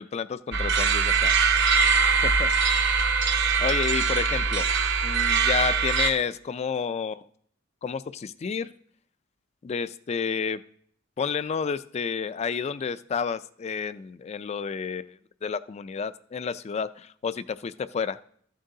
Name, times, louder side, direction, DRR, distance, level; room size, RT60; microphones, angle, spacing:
voice 1, 0.0-1.3 2.2-2.5 3.6-4.7 5.0-7.2 7.8-8.7 9.6-10.6 11.2-18.2, left 6 dB, 35° left, 15 dB, 0.3 m, -30 dB
sound 1, 0.5-6.1, right 5 dB, 60° right, 0.8 m, -22 dB
14.0 x 7.5 x 2.7 m, 0.62 s
head